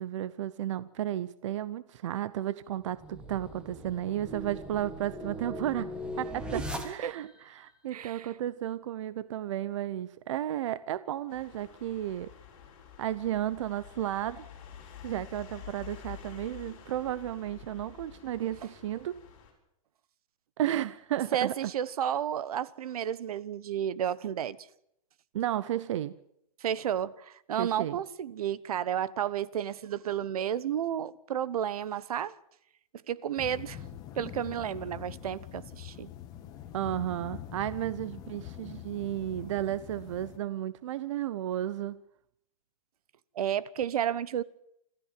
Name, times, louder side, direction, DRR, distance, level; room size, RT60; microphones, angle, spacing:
voice 1, 0.0-12.3 13.0-14.5 15.0-19.1 20.6-21.7 25.3-26.1 27.6-28.0 36.7-42.0, right 12 dB, 55° right, 17 dB, 0.8 m, -33 dB
sound 1, 2.8-7.4, equal, 5° right, 1.7 m, -39 dB
voice 2, 7.9-8.3 21.3-24.6 26.6-32.3 33.1-33.8 34.2-36.1 43.3-44.4, right 10 dB, 75° right, 19 dB, 1.1 m, -32 dB
sound 2, 11.3-19.5, left 9 dB, 35° left, 6.8 m, -49 dB
sound 3, 33.4-40.4, left 10 dB, 20° left, 1.6 m, -44 dB
27.0 x 14.0 x 7.6 m, 0.75 s
hypercardioid pair, 170°, 19 cm